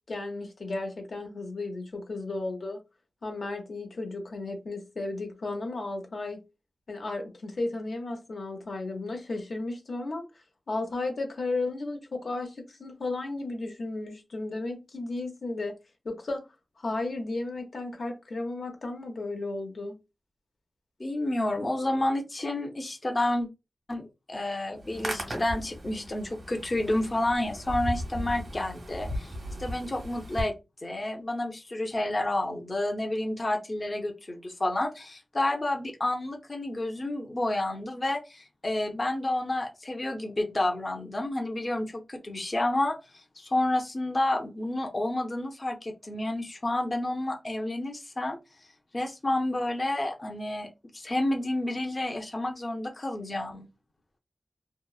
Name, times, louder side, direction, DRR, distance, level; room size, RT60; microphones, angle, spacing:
voice 1, 0.1-2.8 3.2-6.4 6.9-10.2 10.7-15.7 16.0-16.5 16.8-20.0, left 2 dB, 75° left, 0.7 m, -34 dB
voice 2, 21.0-23.5 23.9-29.3 29.6-30.5 30.8-48.4 48.9-50.7 50.9-53.7, left 1 dB, 40° left, 0.6 m, -30 dB
Hands, 24.7-30.4, equal, 75° right, 1.1 m, -37 dB
2.8 x 2.0 x 2.3 m
wide cardioid pair, 65°, 0 cm